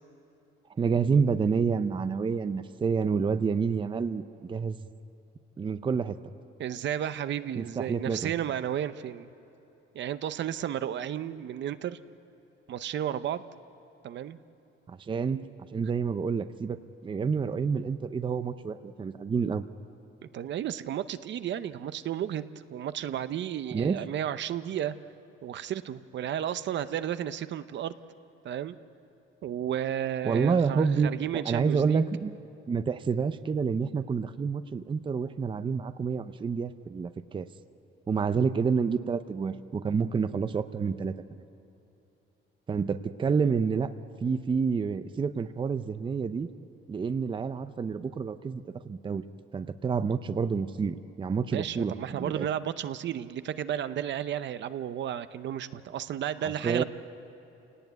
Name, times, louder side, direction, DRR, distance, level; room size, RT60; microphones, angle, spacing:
voice 1, 0.8-4.9 5.6-6.2 7.6-8.3 14.9-19.7 23.7-24.0 30.2-31.1 31.4-32.3 32.7-37.5 38.1-41.4 42.7-43.9 44.2-46.5 46.9-49.2 49.5-52.5 56.4-56.8, right 5 dB, 25° right, 11 dB, 0.6 m, -28 dB
voice 2, 6.6-9.3 9.9-12.0 12.7-13.4 14.0-14.4 20.2-25.0 25.4-28.0 28.4-28.8 29.4-32.0 51.5-56.8, right 10 dB, 60° right, 12 dB, 0.7 m, -33 dB
29.0 x 18.0 x 9.3 m, 2.9 s
cardioid pair, 145°, 21 cm